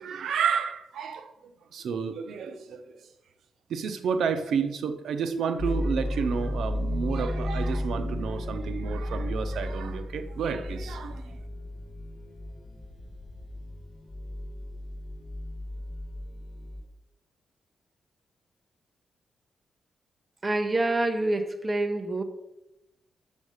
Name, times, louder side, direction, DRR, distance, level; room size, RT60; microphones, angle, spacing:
voice 1, 0.0-1.3 1.7-3.1 3.7-11.4, right 6 dB, 80° right, 0.7 m, -30 dB
sound 1, 5.6-16.8, left 1 dB, 35° left, 1.9 m, -34 dB
voice 2, 20.4-22.2, right 2 dB, 20° right, 0.7 m, -26 dB
6.5 x 5.2 x 6.4 m
wide cardioid pair, 130°, 0 cm